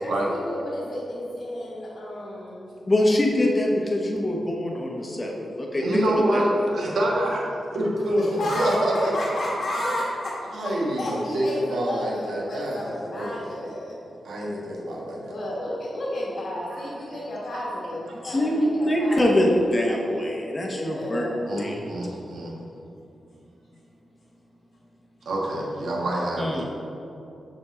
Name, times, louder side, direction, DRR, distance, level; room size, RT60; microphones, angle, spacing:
voice 1, 0.0-2.7 8.2-14.0 15.2-19.7 20.6-21.6, left 1 dB, 60° left, -6 dB, 1.4 m, -32 dB
voice 2, 2.9-5.3 5.6-6.0 6.3-6.4 18.2-21.3 21.6-21.8 26.4-26.6, left 1 dB, 20° left, -1 dB, 0.9 m, -23 dB
voice 3, 5.8-8.2 8.5-9.1 10.5-12.8 13.1-13.3 14.3-15.4 17.1-17.2 17.5-17.6 21.5-22.5 25.3-26.6, right 1 dB, 85° right, -3 dB, 1.6 m, -26 dB
6.8 x 6.3 x 4.2 m, 2.7 s
wide cardioid pair, 170°, 0 cm